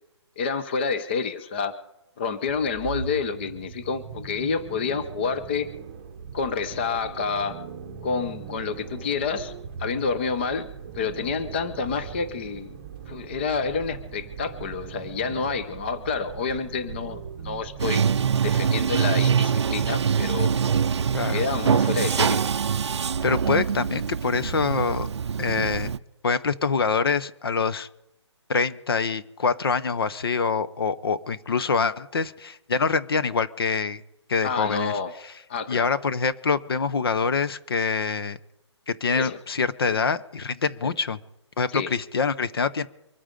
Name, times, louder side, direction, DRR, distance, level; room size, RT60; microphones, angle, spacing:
voice 1, 0.4-1.8 2.2-5.7 6.3-7.6 8.0-9.5 9.8-10.7 10.9-12.7 13.1-18.0 18.4-20.5 21.3-22.4 34.4-35.1 35.5-35.9 39.2-39.4 39.9-40.0 40.8-40.9 41.7-41.9, left 5 dB, 20° left, 11 dB, 0.6 m, -28 dB
sound 1, 2.5-19.3, right 6 dB, 20° right, 0.9 m, -39 dB
Bathtub (filling or washing), 17.8-26.0, right 7 dB, 65° right, 0.5 m, -24 dB
voice 2, 23.2-25.1 25.4-25.9 26.2-27.9 28.5-34.0 34.3-35.0 35.7-38.4 38.9-41.2 41.6-42.9, left 5 dB, 55° left, 14 dB, 0.9 m, -25 dB
24.5 x 8.8 x 5.2 m, 0.88 s
hypercardioid pair, 170°, 15 cm